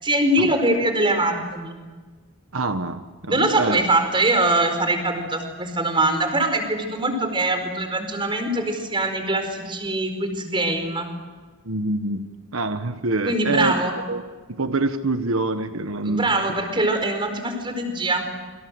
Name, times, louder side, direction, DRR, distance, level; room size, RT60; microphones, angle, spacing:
voice 1, 0.0-1.8 3.3-11.1 13.2-14.0 16.0-18.3, right 2 dB, 25° right, 6 dB, 4.8 m, -23 dB
voice 2, 2.5-3.8 11.6-12.2 12.5-13.8 14.1-14.2 14.5-16.3, right 2 dB, 85° right, 8 dB, 1.5 m, -25 dB
27.5 x 25.5 x 7.9 m, 1.4 s
head